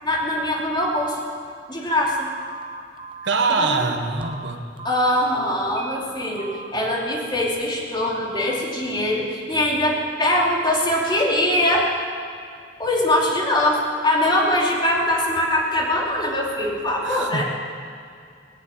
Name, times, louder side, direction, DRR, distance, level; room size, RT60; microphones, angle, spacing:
voice 1, 0.0-1.2 1.7-2.3 3.6-3.9 4.8-11.9 12.8-17.4, left 1 dB, 25° left, -3 dB, 3.0 m, -22 dB
Telephone, 2.2-5.1 5.6-6.0 6.4-6.7, right 3 dB, 30° right, 0.9 m, -38 dB
voice 2, 3.2-4.6 17.0-17.4, right 4 dB, 85° right, 5 dB, 1.4 m, -24 dB
20.5 x 7.1 x 9.0 m, 2.3 s
head